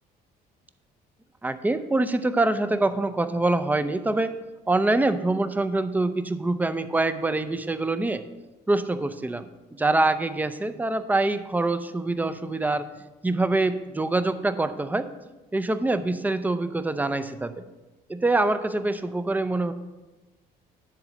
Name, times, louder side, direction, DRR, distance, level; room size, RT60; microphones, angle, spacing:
voice 1, 1.4-4.3 4.7-8.2 8.7-12.9 13.2-15.1 15.5-17.6 18.1-19.7, right 2 dB, 10° right, 11 dB, 0.5 m, -25 dB
10.0 x 4.0 x 6.5 m, 1.1 s
cardioid pair, 110°, 17 cm